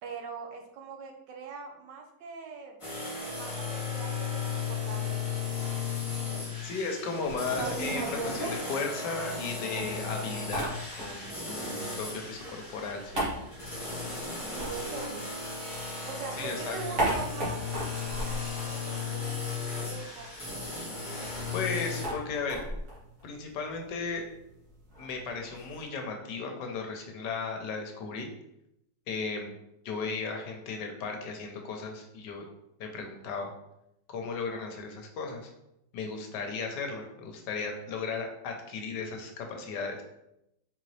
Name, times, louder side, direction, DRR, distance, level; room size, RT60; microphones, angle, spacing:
voice 1, 0.0-2.8 3.2-5.4 14.5-15.3 16.0-17.6 18.1-20.7, right 5 dB, 80° right, 3 dB, 1.3 m, -42 dB
sound 1, 2.8-22.0, left 5 dB, 15° left, 1.7 m, -36 dB
voice 2, 6.6-10.7 11.0-13.3 16.4-16.8 21.5-22.6 23.2-24.2 25.0-28.3 29.1-29.5 29.8-32.5 32.8-33.5 34.1-35.5 35.9-40.0, left 4 dB, 75° left, 3 dB, 1.3 m, -35 dB
sound 2, 7.2-9.4 9.8-11.4 11.7-15.8 16.1-19.4 19.7-19.8 20.0-25.8, right 1 dB, 50° right, 1.8 m, -37 dB
4.0 x 3.8 x 3.2 m, 0.85 s
omnidirectional pair, 1.9 m